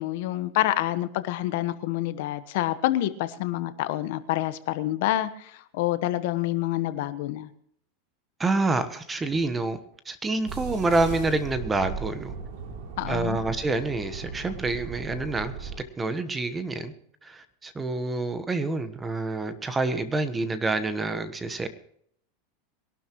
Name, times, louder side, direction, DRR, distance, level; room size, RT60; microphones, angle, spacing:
voice 1, 0.0-5.3 5.7-7.5 13.0-13.4, left 15 dB, 65° left, 12 dB, 1.2 m, -27 dB
voice 2, 8.4-9.8 10.0-12.3 13.1-15.7 16.0-16.9 17.2-21.7, right 3 dB, 15° right, 11 dB, 1.2 m, -27 dB
sound 1, 10.5-15.8, right 5 dB, 60° right, 3.3 m, -37 dB
22.5 x 12.0 x 3.0 m, 0.66 s
supercardioid pair, 140°, 0 cm